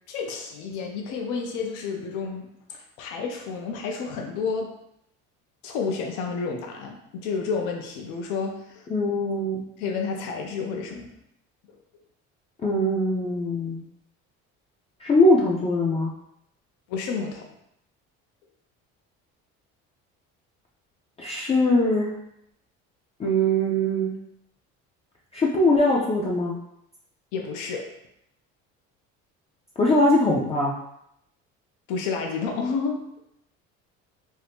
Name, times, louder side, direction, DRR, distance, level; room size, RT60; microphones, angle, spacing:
voice 1, 0.1-4.7 5.6-8.9 9.8-11.1 16.9-17.5 27.3-27.9 31.9-33.2, left 5 dB, 85° left, 2 dB, 0.5 m, -30 dB
voice 2, 8.9-9.6 12.6-13.8 15.0-16.1 21.2-22.1 23.2-24.2 25.3-26.6 29.8-30.7, left 1 dB, 20° left, -4 dB, 0.4 m, -21 dB
2.7 x 2.4 x 3.4 m, 0.78 s
cardioid pair, 125°, 29 cm